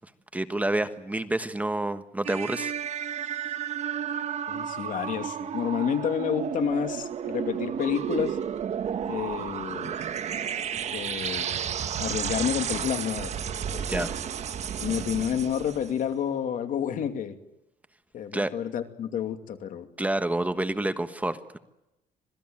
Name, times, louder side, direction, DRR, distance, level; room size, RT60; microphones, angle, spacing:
voice 1, 0.3-2.7 13.9-14.1 18.3-18.5 20.0-21.6, right 1 dB, 10° right, 9 dB, 1.3 m, -28 dB
sound 1, 2.2-16.0, right 8 dB, 50° right, 1.4 m, -32 dB
voice 2, 4.5-8.4 9.1-10.0 10.9-11.5 12.0-13.3 13.7-14.1 14.8-17.4 18.1-19.9, left 8 dB, 60° left, 7 dB, 2.7 m, -29 dB
26.5 x 19.0 x 9.1 m, 0.90 s
cardioid pair, 130°, 15 cm